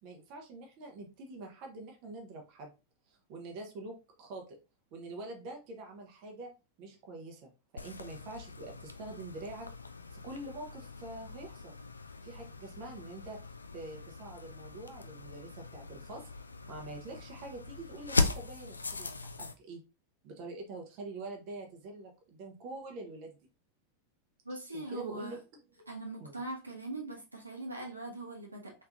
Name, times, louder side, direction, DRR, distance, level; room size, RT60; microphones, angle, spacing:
voice 1, 0.0-2.7 3.1-4.6 4.9-6.5 6.8-7.5 7.8-9.7 10.1-11.8 12.2-13.4 13.7-16.3 16.7-19.1 19.6-19.8 20.2-23.4 24.7-25.4 25.8-25.9 26.2-26.4, right 2 dB, 40° right, 2 dB, 0.8 m, -45 dB
sound 1, 7.8-19.5, left 3 dB, 80° left, 0.3 m, -39 dB
voice 2, 24.4-25.4 25.9-28.7, right 2 dB, 80° right, 0 dB, 0.9 m, -41 dB
3.4 x 3.2 x 2.5 m, 0.30 s
figure-of-eight pair, 90°, 0 cm